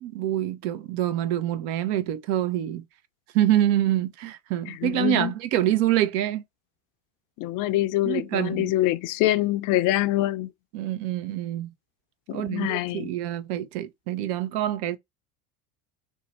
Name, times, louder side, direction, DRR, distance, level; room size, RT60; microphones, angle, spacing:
voice 1, 0.0-2.8 3.3-6.4 8.0-8.7 10.7-11.7 12.3-15.0, right 12 dB, 60° right, 0.7 m, -26 dB
voice 2, 4.7-5.3 7.4-10.5 12.3-13.1, left 16 dB, 45° left, 0.5 m, -25 dB
2.7 x 2.2 x 4.0 m
hypercardioid pair, 85°, 47 cm